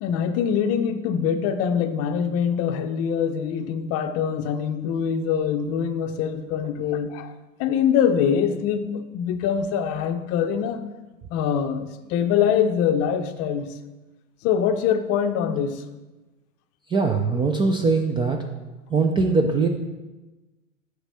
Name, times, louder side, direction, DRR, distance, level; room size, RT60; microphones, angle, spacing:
voice 1, 0.0-7.3 7.6-10.8 11.3-13.7 14.4-15.8, left 8 dB, 35° left, 9 dB, 0.7 m, -24 dB
voice 2, 16.9-18.4 18.9-19.7, right 4 dB, 10° right, 4 dB, 0.4 m, -21 dB
7.9 x 6.3 x 4.2 m, 1.1 s
hypercardioid pair, 110°, 40 cm